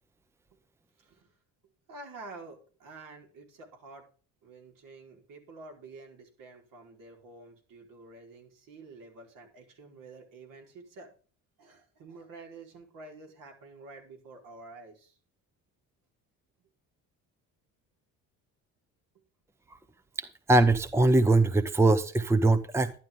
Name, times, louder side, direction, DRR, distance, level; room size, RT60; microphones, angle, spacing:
voice 1, 1.0-1.3 1.9-4.1 4.4-11.1 11.6-15.2, right 3 dB, 65° right, 2 dB, 4.7 m, -49 dB
voice 2, 20.2-22.9, right 2 dB, 10° right, 12 dB, 0.8 m, -22 dB
11.5 x 11.0 x 3.7 m, 0.38 s
cardioid pair, 115°, 34 cm